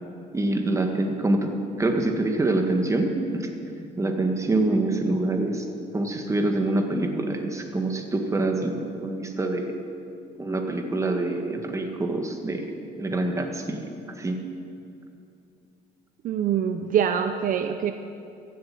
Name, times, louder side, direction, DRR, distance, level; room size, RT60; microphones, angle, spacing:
voice 1, 0.3-3.5 3.8-5.6 5.9-9.7 10.4-12.7 13.0-13.9 14.2-14.4, right 2 dB, 20° right, 4 dB, 1.7 m, -25 dB
voice 2, 16.2-17.9, right 8 dB, 55° right, 7 dB, 0.7 m, -24 dB
14.5 x 7.9 x 8.7 m, 2.7 s
cardioid pair, 110°, 17 cm